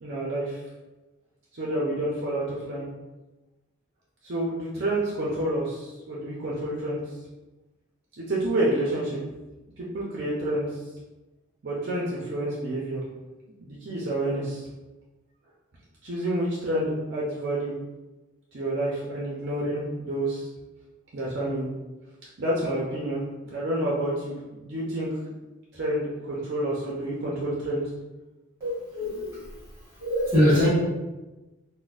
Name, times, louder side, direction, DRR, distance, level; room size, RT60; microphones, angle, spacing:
voice 1, 0.0-0.6 1.5-2.9 4.2-7.0 8.2-9.2 9.8-10.8 11.6-13.0 13.6-14.7 16.0-17.8 18.5-20.5 21.1-21.7 22.4-25.1 25.7-27.8, right 1 dB, 60° right, -5 dB, 0.6 m, -29 dB
voice 2, 28.6-29.5 30.0-30.7, equal, 15° right, -12 dB, 1.3 m, -23 dB
3.9 x 2.1 x 2.4 m, 1.1 s
head